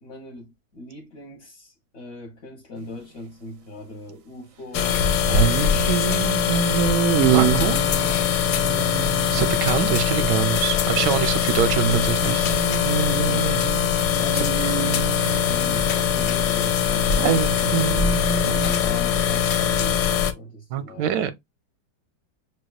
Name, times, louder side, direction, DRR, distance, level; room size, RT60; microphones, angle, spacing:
voice 1, 0.0-6.7 8.7-9.0 13.2-13.6 14.2-15.1 15.4-21.1, left 1 dB, 45° left, 1.1 m, -40 dB
sound 1, 2.8-2.9 5.3-9.6 11.8-16.4 17.2-18.8, right 9 dB, 65° right, 0.8 m, -26 dB
sound 2, 4.7-20.3, left 8 dB, 75° left, 1.1 m, -22 dB
voice 2, 7.3-7.8 9.3-12.5 14.3-14.4 20.7-21.3, right 9 dB, 85° right, 1.2 m, -24 dB
6.4 x 2.3 x 2.3 m
omnidirectional pair, 1.8 m